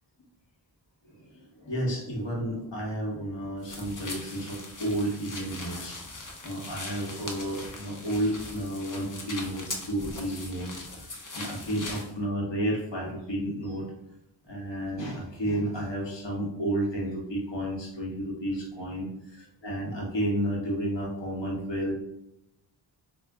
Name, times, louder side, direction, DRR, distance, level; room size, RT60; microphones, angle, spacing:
voice 1, 1.0-10.7 11.1-13.9 14.5-21.9, right 1 dB, 65° left, -3 dB, 1.3 m, -32 dB
sound 1, 3.6-12.1, left 2 dB, 40° left, 0.7 m, -40 dB
3.5 x 2.4 x 3.5 m, 0.84 s
wide cardioid pair, 65°, 47 cm